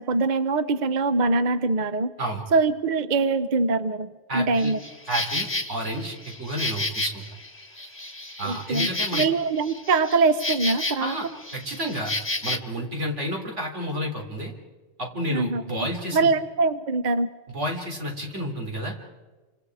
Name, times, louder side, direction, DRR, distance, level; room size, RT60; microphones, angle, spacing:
voice 1, 0.0-2.1 2.5-4.8 8.4-11.2 15.3-15.9 16.1-17.3, right 3 dB, 45° right, 11 dB, 0.9 m, -23 dB
voice 2, 4.3-4.7 5.1-7.2 8.4-9.2 11.0-11.3 11.5-12.1 12.4-14.5 15.0-16.3 17.5-19.0, equal, 85° right, 1 dB, 4.0 m, -30 dB
Insect, 4.5-12.6, left 2 dB, 10° left, 1.3 m, -31 dB
28.5 x 26.0 x 4.9 m, 1.3 s
omnidirectional pair, 1.2 m